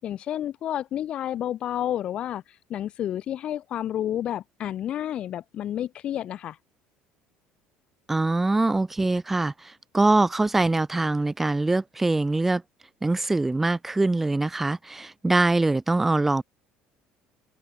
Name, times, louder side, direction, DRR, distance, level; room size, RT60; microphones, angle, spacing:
voice 1, 0.0-6.6, left 11 dB, 40° left, 7.6 m, -30 dB
voice 2, 8.1-12.6 13.0-16.4, right 2 dB, 10° right, 4.1 m, -23 dB
cardioid pair, 150°, 3 cm